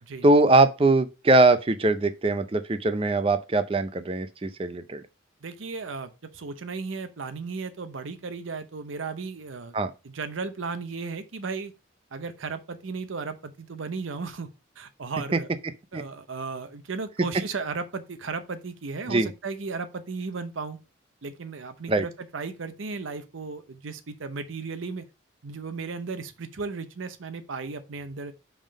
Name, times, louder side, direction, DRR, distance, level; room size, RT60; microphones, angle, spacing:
voice 1, 0.2-5.0 9.7-9.9 15.3-15.4 15.9-16.0 19.1-19.3 21.9-22.1, right 2 dB, 30° right, 0.5 m, -21 dB
voice 2, 5.4-9.8 10.0-11.7 12.1-14.5 14.8-15.5 15.9-20.8 21.2-25.0 25.4-28.3, right 4 dB, 85° right, 0.7 m, -35 dB
5.5 x 3.6 x 4.9 m
head